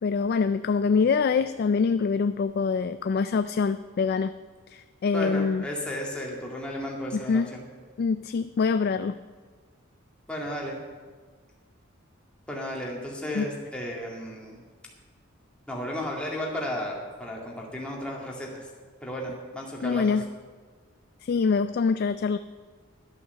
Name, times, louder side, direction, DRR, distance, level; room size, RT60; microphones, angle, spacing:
voice 1, 0.0-4.3 4.7-5.6 7.1-7.5 8.0-9.2 13.4-13.5 19.8-20.3 21.2-22.4, left 5 dB, 50° left, 11 dB, 0.3 m, -25 dB
voice 2, 5.1-7.6 10.3-10.8 12.5-14.6 15.7-18.7 19.0-20.2, equal, 5° left, -3 dB, 2.1 m, -34 dB
11.5 x 8.5 x 6.8 m, 1.5 s
head